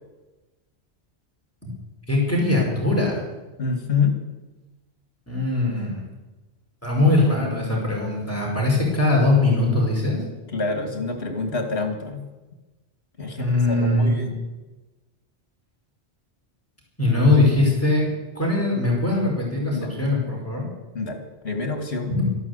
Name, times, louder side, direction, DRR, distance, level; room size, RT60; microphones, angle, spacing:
voice 1, 2.1-3.2 5.3-6.1 6.8-10.2 13.4-14.1 17.0-18.1 18.4-20.7 22.1-22.3, left 2 dB, 15° left, -3 dB, 5.2 m, -21 dB
voice 2, 3.6-4.2 10.5-12.2 13.2-14.4 19.7-19.9 20.9-22.1, left 4 dB, 65° left, 5 dB, 2.3 m, -27 dB
13.0 x 12.0 x 8.3 m, 1.1 s
omnidirectional pair, 1.1 m